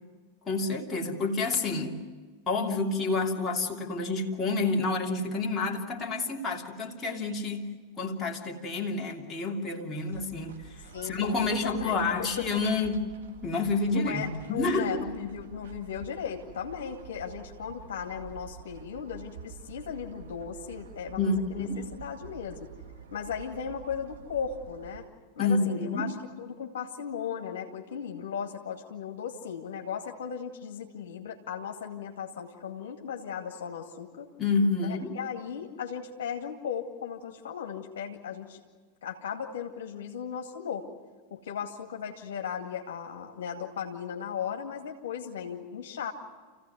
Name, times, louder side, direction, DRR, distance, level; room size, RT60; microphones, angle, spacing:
voice 1, 0.4-2.0 2.5-7.7 8.0-13.1 13.4-15.1 15.6-15.7 21.2-21.8 25.4-26.1 34.4-35.2, left 3 dB, 20° left, -1 dB, 2.8 m, -29 dB
sound 1, 10.1-25.0, right 8 dB, 60° right, 2.0 m, -48 dB
voice 2, 10.9-12.1 12.4-12.5 13.9-22.7 23.1-25.1 25.4-34.3 34.8-38.6 39.0-40.9 41.3-46.1, left 7 dB, 60° left, 3 dB, 2.2 m, -37 dB
29.0 x 16.0 x 9.6 m, 1.5 s
figure-of-eight pair, 90°, 0 cm